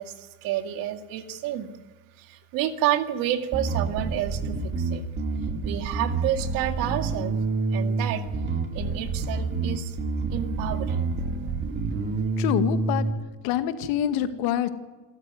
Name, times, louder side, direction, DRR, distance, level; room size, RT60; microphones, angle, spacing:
voice 1, 0.0-1.7 2.2-5.0 5.6-7.3 7.7-8.3 8.7-10.0 10.3-11.1, right 12 dB, 65° right, 7 dB, 2.3 m, -29 dB
Bass guitar, 3.5-13.1, right 3 dB, 30° right, 2.6 m, -28 dB
voice 2, 12.4-13.1 13.4-14.7, left 10 dB, 80° left, 9 dB, 2.0 m, -26 dB
27.5 x 13.5 x 9.6 m, 1.2 s
cardioid pair, 165°, 37 cm